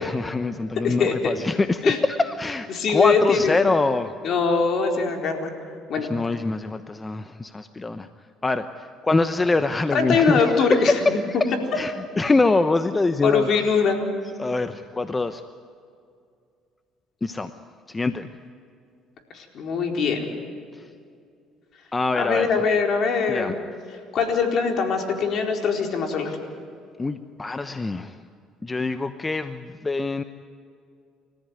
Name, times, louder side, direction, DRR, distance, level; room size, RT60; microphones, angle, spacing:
voice 1, 0.0-4.1 6.0-8.1 8.4-10.9 11.3-13.5 14.4-15.4 17.2-17.5 17.9-18.3 20.7-20.8 21.9-22.5 23.3-23.5 27.0-28.2 28.6-30.2, left 3 dB, 20° left, 10 dB, 1.0 m, -24 dB
voice 2, 0.8-1.3 1.8-2.0 2.7-3.6 4.2-5.5 5.9-6.1 9.9-11.2 13.2-14.0 19.3-20.3 22.2-23.6 24.1-26.4, left 5 dB, 60° left, 3 dB, 4.3 m, -22 dB
29.0 x 14.5 x 9.5 m, 2.3 s
supercardioid pair, 70°, 0 cm